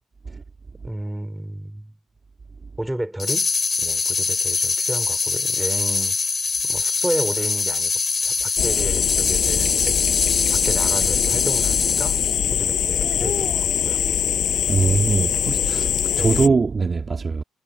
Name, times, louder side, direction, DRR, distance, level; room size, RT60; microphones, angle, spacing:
voice 1, 0.8-1.9 2.8-3.5 3.8-6.1 6.6-7.9 8.2-10.0 10.3-12.2 12.5-14.0 15.8-15.9 16.2-16.6, right 1 dB, 10° right, 4.5 m, -31 dB
sound 1, 3.2-12.4, left 4 dB, 35° left, 2.8 m, -23 dB
sound 2, 8.6-16.5, left 8 dB, 60° left, 5.6 m, -22 dB
voice 2, 14.7-15.9 16.2-17.4, right 4 dB, 35° right, 1.8 m, -21 dB
cardioid pair, 90°, 0 cm